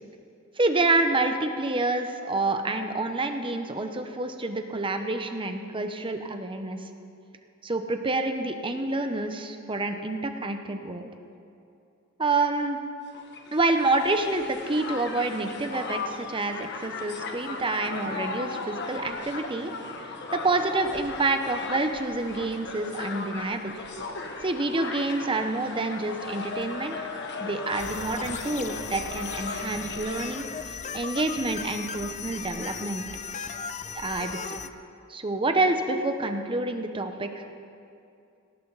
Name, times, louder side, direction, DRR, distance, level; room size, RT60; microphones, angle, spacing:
voice 1, 0.6-6.9 7.6-11.1 12.2-12.8 13.5-19.7 20.0-23.7 24.4-33.1 33.9-34.6 35.1-37.5, right 2 dB, 25° right, 6 dB, 1.0 m, -28 dB
Crowd, 13.1-30.5, left 3 dB, 55° left, 1.4 m, -37 dB
sound 1, 27.8-34.7, left 6 dB, 35° left, 0.6 m, -37 dB
18.5 x 18.0 x 4.1 m, 2.5 s
head